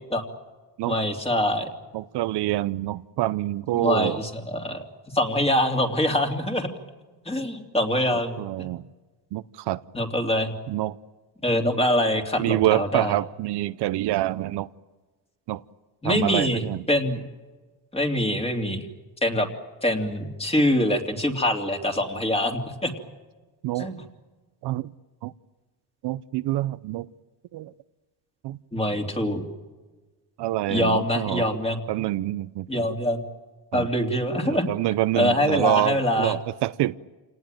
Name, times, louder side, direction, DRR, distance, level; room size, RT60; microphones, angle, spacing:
voice 1, 0.9-1.7 3.7-4.8 5.1-6.7 7.2-8.7 9.9-10.5 11.4-13.1 16.0-17.2 17.9-18.9 19.2-19.5 19.8-22.9 23.7-24.0 28.7-29.5 30.7-31.8 32.7-33.2 33.7-34.7 35.2-36.4, left 1 dB, 15° left, 2.9 m, -24 dB
voice 2, 1.9-4.2 8.4-8.8 9.3-9.8 10.7-10.9 12.4-14.7 15.5-15.6 16.0-16.8 23.6-23.9 24.6-24.9 25.2-25.3 26.0-27.1 27.5-27.7 28.4-28.6 30.4-31.4 31.9-32.7 33.7-33.9 34.4-36.9, right 15 dB, 70° right, 0.7 m, -26 dB
27.5 x 18.5 x 9.2 m
cardioid pair, 110°, 42 cm